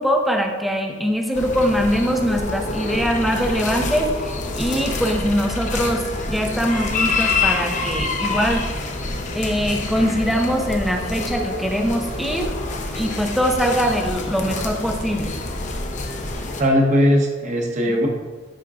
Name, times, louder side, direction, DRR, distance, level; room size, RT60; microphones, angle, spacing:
voice 1, 0.0-8.7 9.3-12.5 13.0-15.4, equal, ahead, 3 dB, 0.6 m, -22 dB
sound 1, 1.3-16.6, left 3 dB, 40° left, 0.6 m, -27 dB
voice 2, 16.6-18.1, equal, 40° right, 1 dB, 1.0 m, -18 dB
10.0 x 5.2 x 2.4 m, 1.4 s
head